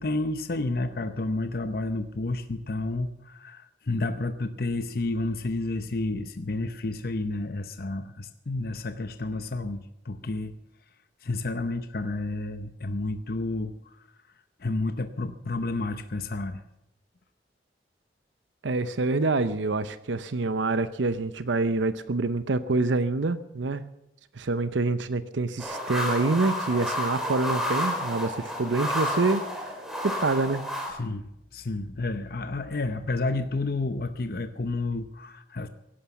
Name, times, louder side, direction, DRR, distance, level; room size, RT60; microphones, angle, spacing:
voice 1, 0.0-10.5 11.2-13.7 14.6-16.6 31.0-31.2 31.5-35.7, left 2 dB, 50° left, 9 dB, 0.7 m, -30 dB
voice 2, 18.6-23.8 24.3-29.7 30.0-30.6, right 3 dB, 85° right, 13 dB, 0.7 m, -26 dB
sound 1, 25.6-30.9, equal, ahead, 3.3 m, -30 dB
17.0 x 11.5 x 7.0 m, 0.86 s
head